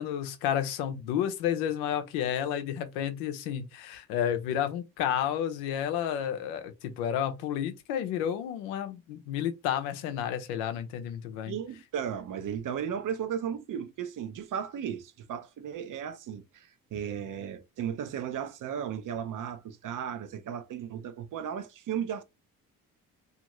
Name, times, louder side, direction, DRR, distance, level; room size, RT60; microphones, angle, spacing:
voice 1, 0.0-11.6, left 9 dB, 85° left, 0.6 m, -31 dB
voice 2, 11.5-22.2, right 8 dB, 55° right, 0.6 m, -35 dB
2.5 x 2.5 x 3.0 m
supercardioid pair, 60°, 38 cm